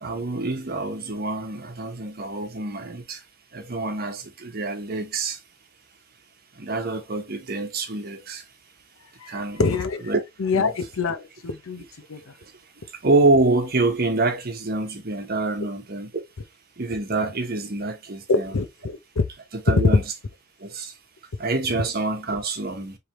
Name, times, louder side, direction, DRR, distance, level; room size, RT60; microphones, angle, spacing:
voice 1, 0.0-3.2 3.5-5.4 6.6-8.4 9.3-9.6 10.1-10.2 10.6-10.7 13.0-16.1 16.8-18.5 19.7-20.0 20.6-20.9 21.4-23.0, right 2 dB, 45° right, 1.0 m, -26 dB
voice 2, 9.2-10.1 10.4-11.8 12.1-12.3 18.3-19.2, left 4 dB, 70° left, 0.7 m, -26 dB
4.6 x 3.4 x 3.1 m
head